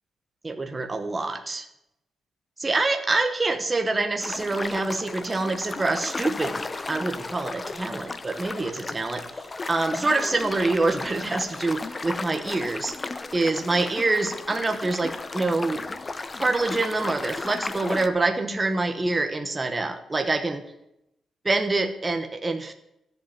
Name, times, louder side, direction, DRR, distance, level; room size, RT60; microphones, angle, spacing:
voice 1, 0.4-1.7 2.6-6.6 6.9-9.2 9.7-12.9 13.3-15.8 16.4-20.6 21.4-22.7, right 3 dB, 15° right, 6 dB, 1.2 m, -26 dB
sound 1, 4.2-18.1, left 3 dB, 20° left, 0.7 m, -34 dB
13.5 x 8.0 x 8.7 m, 0.82 s
wide cardioid pair, 165°, 0 cm